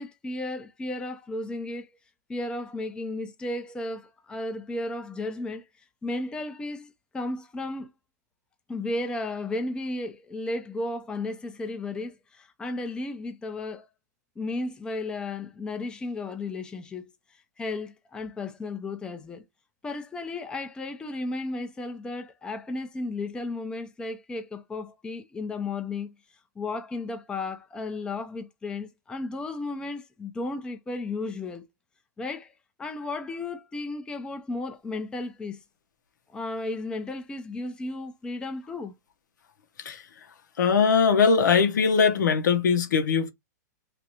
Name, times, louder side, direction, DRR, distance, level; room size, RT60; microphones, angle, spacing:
voice 1, 0.0-1.9 2.3-5.7 6.0-7.9 8.7-13.9 14.4-17.1 17.6-19.4 19.8-26.1 26.6-31.6 32.2-32.5 32.8-35.6 36.3-38.9, left 2 dB, 10° left, 0.4 m, -34 dB
voice 2, 40.6-43.3, left 5 dB, 85° left, 0.8 m, -21 dB
3.2 x 2.5 x 2.8 m
hypercardioid pair, 140°, 10 cm